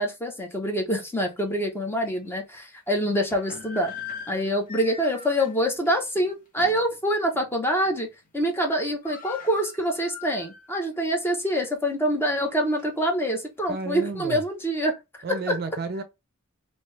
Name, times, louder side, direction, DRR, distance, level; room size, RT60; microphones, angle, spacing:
voice 1, 0.0-3.9 4.3-8.1 8.3-15.0, equal, 10° left, 0.8 m, -25 dB
sound 1, 1.4-1.5 2.0-2.2 3.1-6.9 7.3-7.5 7.9-8.3 8.5-8.6 8.8-10.8 11.2-11.3 11.9-13.2, left 6 dB, 40° left, 1.1 m, -42 dB
voice 2, 13.7-14.4 15.2-16.0, right 3 dB, 45° right, 0.5 m, -31 dB
3.2 x 2.7 x 3.2 m
head